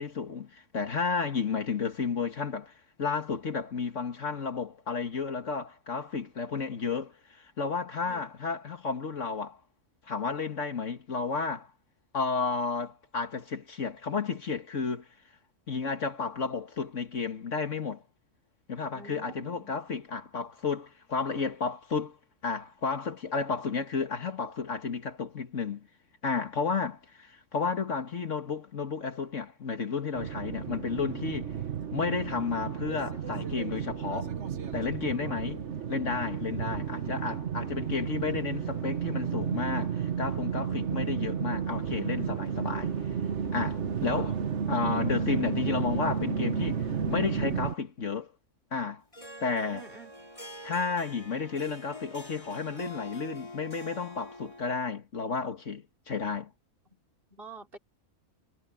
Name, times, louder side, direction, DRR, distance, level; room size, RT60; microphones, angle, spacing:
voice 1, 0.0-2.7 3.0-9.6 10.0-11.7 12.1-15.1 15.7-18.0 18.7-22.2 22.4-25.9 26.2-31.5 31.9-34.4 34.7-35.6 35.9-42.9 43.5-44.4 44.7-48.3 48.7-49.0 49.4-49.9 50.6-56.5, left 5 dB, 60° left, 2.0 m, -32 dB
voice 2, 18.9-19.8 35.1-35.5 49.7-50.3 57.3-57.8, right 4 dB, 40° right, 4.7 m, -47 dB
sound 1, 30.1-47.7, right 7 dB, 55° right, 1.5 m, -32 dB
Harp, 49.1-54.9, left 1 dB, 25° left, 4.4 m, -45 dB
omnidirectional pair, 1.4 m